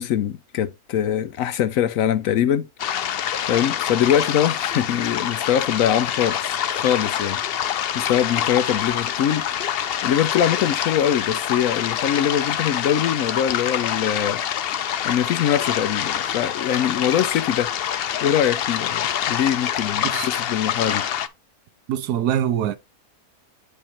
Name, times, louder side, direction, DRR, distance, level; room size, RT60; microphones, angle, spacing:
voice 1, 0.0-2.7 3.5-9.5 10.0-14.4 15.0-17.7 18.2-21.1, left 9 dB, 70° left, 0.9 m, -23 dB
sound 1, 2.8-21.3, left 10 dB, 85° left, 0.5 m, -26 dB
voice 2, 21.9-22.8, right 10 dB, 90° right, 1.2 m, -23 dB
8.5 x 4.9 x 2.9 m
omnidirectional pair, 1.6 m